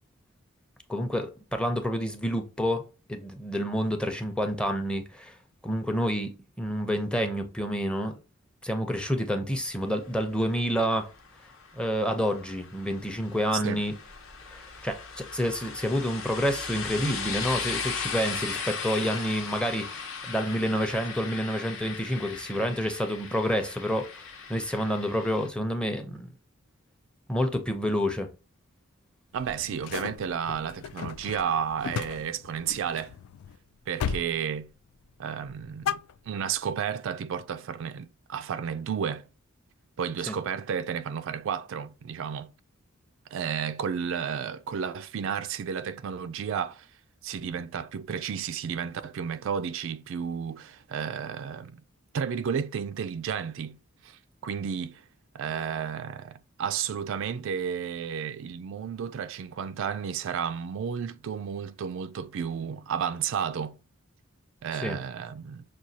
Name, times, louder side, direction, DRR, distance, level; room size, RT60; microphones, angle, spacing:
voice 1, 0.9-5.3 5.6-8.2 8.6-11.1 11.7-13.9 14.5-24.2 24.5-26.3 27.3-28.3 40.3-40.4 64.7-65.0, equal, 5° left, 0.6 m, -29 dB
sound 1, 10.5-25.5, left 5 dB, 70° left, 0.9 m, -38 dB
sound 2, 29.3-33.6 34.0-34.4 34.6-35.1 35.4-36.7, left 7 dB, 90° left, 0.3 m, -36 dB
voice 2, 29.3-33.2 33.9-34.7 35.2-39.3 40.0-42.5 43.3-46.9 47.2-51.8 52.1-53.8 54.0-55.0 55.3-63.8 64.6-65.6, right 7 dB, 65° right, 0.3 m, -32 dB
6.0 x 2.3 x 2.7 m
head